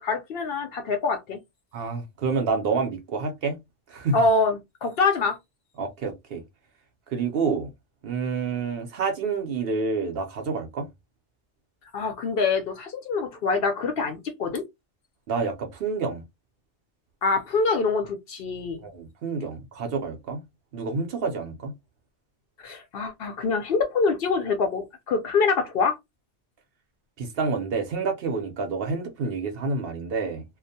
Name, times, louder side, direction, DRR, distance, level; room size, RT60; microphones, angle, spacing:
voice 1, 0.0-1.4 4.1-5.4 11.9-14.6 17.2-18.8 22.6-26.0, left 4 dB, 65° left, 0.7 m, -25 dB
voice 2, 1.7-3.6 3.9-4.2 5.8-6.4 7.1-7.7 8.0-10.9 15.3-16.2 18.8-20.4 20.7-21.7 27.2-30.4, right 4 dB, 60° right, 0.7 m, -28 dB
2.3 x 2.1 x 2.6 m
omnidirectional pair, 1.2 m